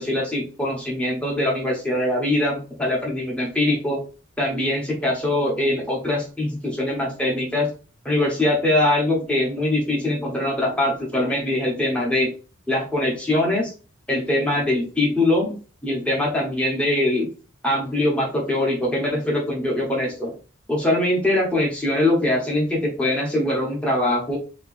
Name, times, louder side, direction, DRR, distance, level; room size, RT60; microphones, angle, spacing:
voice 1, 0.0-4.0 4.4-7.7 8.0-12.3 12.7-13.7 14.1-15.5 15.8-17.3 17.6-20.3 20.7-24.4, left 1 dB, 5° left, -3 dB, 1.1 m, -22 dB
3.1 x 2.9 x 3.2 m, 0.36 s
head